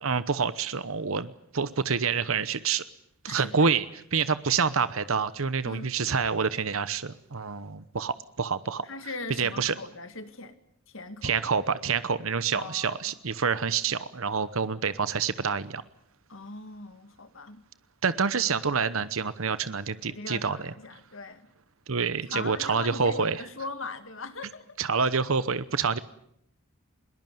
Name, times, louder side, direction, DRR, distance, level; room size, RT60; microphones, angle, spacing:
voice 1, 0.0-2.8 3.2-3.8 4.1-8.9 9.4-9.7 11.2-15.8 18.0-20.7 21.9-23.3 24.8-26.0, right 5 dB, 75° right, 14 dB, 0.9 m, -27 dB
voice 2, 3.3-3.7 5.6-6.0 8.8-10.6 10.9-11.4 12.5-13.2 16.3-17.6 20.1-21.5 22.3-24.8, left 3 dB, 65° left, 9 dB, 2.1 m, -40 dB
22.0 x 19.5 x 9.4 m, 0.73 s
head